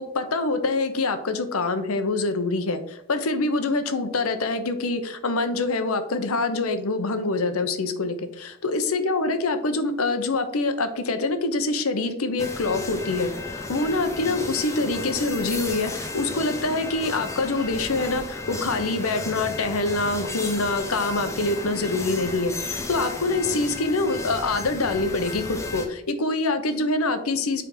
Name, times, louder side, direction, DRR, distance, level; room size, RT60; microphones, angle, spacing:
voice 1, 0.0-27.6, left 3 dB, 85° left, 9 dB, 0.9 m, -25 dB
sound 1, 12.4-25.9, left 3 dB, 15° left, 0.7 m, -34 dB
7.5 x 3.6 x 5.4 m, 0.78 s
head